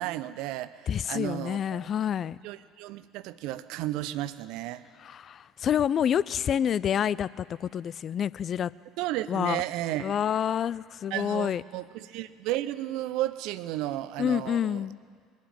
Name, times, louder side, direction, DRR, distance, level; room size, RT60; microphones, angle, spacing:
voice 1, 0.0-0.8 1.1-1.8 2.4-4.9 9.0-10.1 11.1-14.9, right 14 dB, 65° right, 15 dB, 0.6 m, -33 dB
voice 2, 0.9-2.4 5.0-8.7 9.3-9.6 10.0-11.6 14.2-15.0, left 9 dB, 45° left, 19 dB, 0.3 m, -28 dB
22.0 x 7.3 x 8.9 m, 2.1 s
hypercardioid pair, 65°, 0 cm